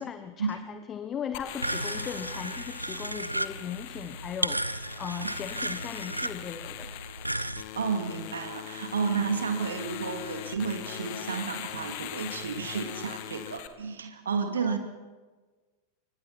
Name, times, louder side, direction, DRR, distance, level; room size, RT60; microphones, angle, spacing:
voice 1, 0.0-6.9 14.6-14.8, left 8 dB, 25° left, 10 dB, 1.2 m, -38 dB
sound 1, 1.3-13.7, left 13 dB, 50° left, 1.7 m, -41 dB
sound 2, 1.6-7.6, right 1 dB, 85° right, 0.8 m, -34 dB
voice 2, 7.7-14.8, right 5 dB, 70° right, 6 dB, 2.3 m, -31 dB
27.5 x 25.0 x 4.4 m, 1.3 s
figure-of-eight pair, 90°, 0 cm